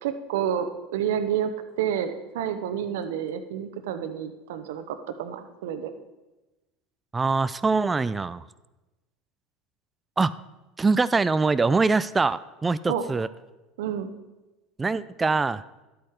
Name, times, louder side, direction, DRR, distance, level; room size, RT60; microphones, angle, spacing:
voice 1, 0.0-1.5 1.8-5.9 12.9-13.1 13.8-14.1, right 9 dB, 70° right, 9 dB, 0.9 m, -29 dB
voice 2, 7.1-8.4 10.2-10.3 10.8-13.3 14.8-15.6, right 4 dB, 20° right, 15 dB, 0.4 m, -23 dB
12.0 x 8.6 x 4.8 m, 1.1 s
hypercardioid pair, 75°, 0 cm